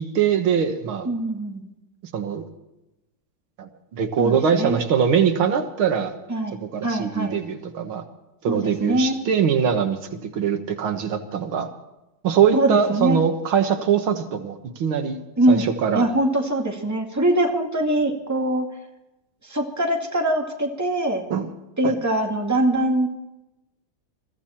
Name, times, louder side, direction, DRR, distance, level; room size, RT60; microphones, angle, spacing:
voice 1, 0.0-1.1 2.1-2.4 3.6-6.2 6.6-8.0 8.4-11.7 12.2-16.1 21.3-21.5 21.8-22.0, right 7 dB, 85° right, 7 dB, 2.2 m, -22 dB
voice 2, 1.1-1.7 4.2-4.8 6.3-7.4 8.5-9.2 12.5-13.2 15.4-15.7 15.9-18.7 19.4-21.2 21.8-23.1, right 1 dB, 10° right, 2 dB, 2.1 m, -23 dB
22.5 x 14.5 x 4.4 m, 0.95 s
omnidirectional pair, 2.2 m